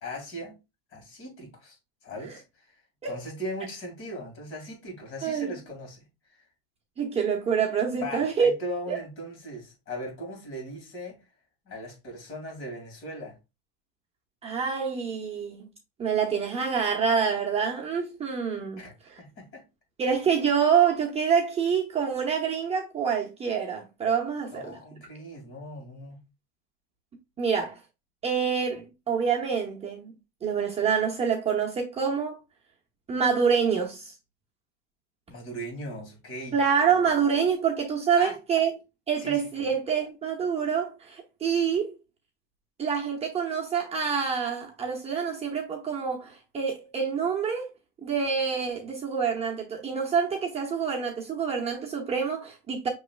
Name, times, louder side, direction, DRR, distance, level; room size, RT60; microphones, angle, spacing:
voice 1, 0.0-0.5 0.9-1.8 2.0-6.0 6.3-6.4 8.0-11.2 11.7-13.4 18.8-19.6 24.5-26.2 35.3-36.6 36.9-37.1 38.2-38.4 39.2-39.7, equal, 45° left, 2.3 m, -39 dB
voice 2, 5.2-5.6 7.0-8.5 8.9-9.0 14.4-15.6 16.0-18.8 20.0-24.8 27.4-27.8 28.2-30.1 30.4-32.4 33.1-34.1 36.5-38.8 39.1-42.0 42.8-47.7 48.0-52.9, right 6 dB, 20° right, 0.8 m, -26 dB
6.4 x 3.1 x 2.3 m
cardioid pair, 150°, 30 cm